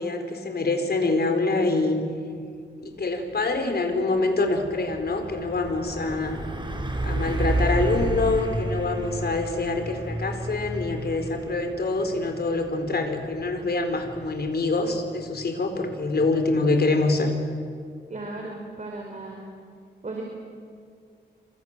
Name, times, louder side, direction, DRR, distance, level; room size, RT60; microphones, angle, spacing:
voice 1, 0.0-2.0 2.8-6.4 7.0-17.3, left 3 dB, 60° left, 5 dB, 4.5 m, -25 dB
Truck, 3.4-3.6 4.0-16.6, right 1 dB, 25° right, 4.0 m, -32 dB
voice 2, 18.1-19.4 20.0-20.2, right 2 dB, 40° right, 0 dB, 4.8 m, -35 dB
28.0 x 26.5 x 7.5 m, 2.2 s
wide cardioid pair, 90°, 19 cm